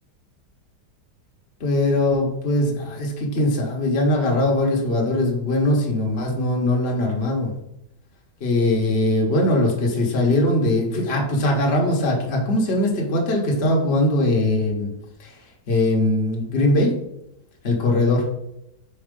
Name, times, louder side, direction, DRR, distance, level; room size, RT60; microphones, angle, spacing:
voice 1, 1.6-7.5 8.4-14.9 15.2-15.4 15.7-17.0 17.6-18.2, left 1 dB, 45° left, -1 dB, 1.2 m, -21 dB
4.5 x 4.2 x 5.2 m, 0.82 s
omnidirectional pair, 1.7 m